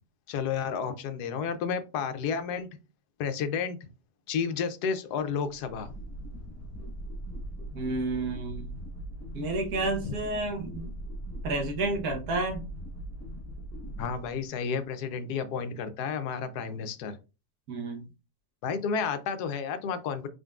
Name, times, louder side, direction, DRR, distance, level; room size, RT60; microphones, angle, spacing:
voice 1, 0.3-2.7 3.2-3.9 4.3-5.9 10.0-10.2 14.0-17.2 18.6-20.3, left 6 dB, 75° left, 9 dB, 1.2 m, -31 dB
sound 1, 5.5-14.8, right 1 dB, 15° left, 0.6 m, -40 dB
voice 2, 7.7-8.7 9.3-10.9 11.4-12.7 17.7-18.0, right 2 dB, 70° right, 2 dB, 1.5 m, -30 dB
4.3 x 3.8 x 2.3 m, 0.30 s
omnidirectional pair, 1.7 m